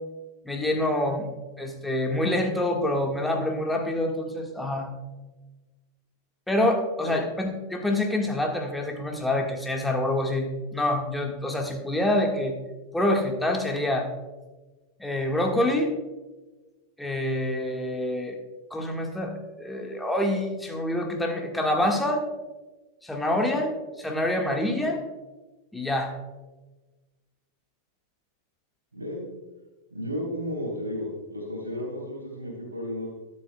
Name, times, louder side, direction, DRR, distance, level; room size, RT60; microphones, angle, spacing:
voice 1, 0.4-1.3 1.6-4.9 6.5-12.6 12.9-14.1 15.0-15.9 17.0-18.4 18.7-22.2 23.0-25.0 25.7-26.1, left 1 dB, 5° left, 1 dB, 1.6 m, -26 dB
voice 2, 28.9-29.3 29.9-33.1, equal, 75° right, 0 dB, 3.5 m, -33 dB
21.5 x 8.4 x 2.3 m, 1.2 s
figure-of-eight pair, 90°, 0 cm